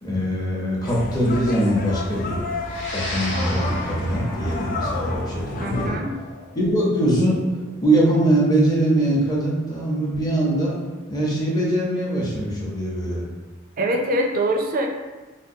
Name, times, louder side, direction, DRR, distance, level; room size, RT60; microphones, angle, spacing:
voice 1, 0.0-2.4 2.9-6.0 6.6-7.4 7.8-10.7 11.1-13.2, right 1 dB, 20° left, -4 dB, 0.7 m, -22 dB
sound 1, 0.8-5.9, left 3 dB, 45° left, 0.4 m, -32 dB
sound 2, 2.6-11.2, left 1 dB, 65° left, 0.8 m, -36 dB
voice 2, 5.6-6.2 13.8-14.9, right 1 dB, 45° right, 2 dB, 0.4 m, -23 dB
3.5 x 2.3 x 2.7 m, 1.2 s
head